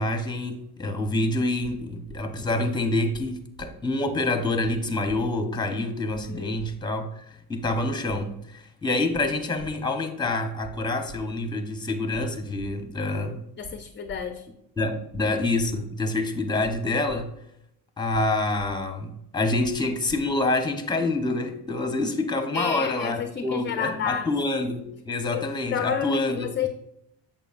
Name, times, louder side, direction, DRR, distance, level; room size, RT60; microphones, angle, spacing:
voice 1, 0.0-13.4 14.8-17.3 18.0-26.7, left 2 dB, 10° left, 6 dB, 0.9 m, -27 dB
sound 1, 2.1-2.2 3.1-3.2 3.6-3.7 4.6-4.7 5.1-5.2 6.1-6.2 6.6-6.7 7.6-7.7 8.1-8.2 9.1-9.2 9.6-9.7 10.6-10.7 11.1-11.2 12.1-12.2 12.6-12.7 13.6-13.7 14.1-14.2 15.1-15.2 15.6-15.7 16.6-16.7 17.1-17.2 18.1-18.2 18.6-18.7 19.6-19.7 20.1-20.2, right 3 dB, 65° right, 1.4 m, -44 dB
voice 2, 6.3-6.6 13.6-14.5 22.5-24.3 25.3-25.4 25.7-26.7, left 7 dB, 25° left, 7 dB, 0.4 m, -30 dB
8.3 x 7.0 x 2.5 m, 0.82 s
cardioid pair, 115°, 45 cm